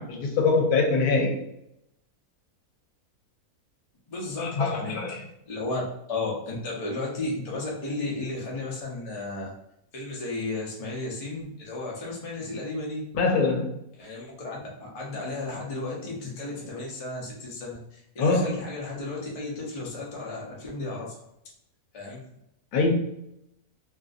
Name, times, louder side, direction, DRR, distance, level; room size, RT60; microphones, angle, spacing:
voice 1, 0.0-1.4 4.4-5.2 13.1-13.8 18.2-18.7 22.7-22.9, left 3 dB, 80° left, 2 dB, 1.1 m, -24 dB
voice 2, 4.1-5.0 5.5-9.5 9.9-13.0 14.0-21.1 21.9-22.2, left 2 dB, 40° left, -3 dB, 0.5 m, -34 dB
2.7 x 2.5 x 2.4 m, 0.78 s
omnidirectional pair, 1.6 m